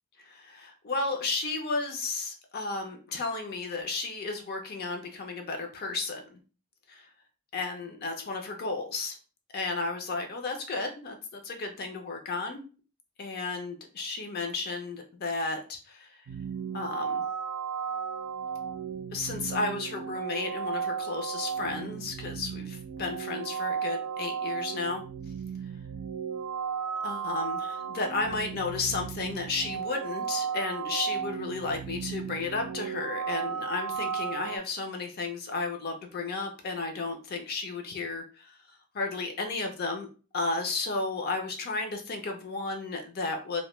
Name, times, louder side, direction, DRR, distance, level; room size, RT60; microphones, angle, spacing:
voice 1, 0.2-6.4 6.9-7.1 7.5-9.2 9.5-12.6 13.2-16.2 16.7-17.2 19.1-25.0 27.0-38.6 38.9-40.1 40.3-43.6, left 3 dB, 45° left, 3 dB, 0.4 m, -33 dB
sound 1, 16.3-34.6, right 7 dB, 85° right, 0.4 m, -35 dB
2.1 x 2.1 x 2.9 m, 0.35 s
head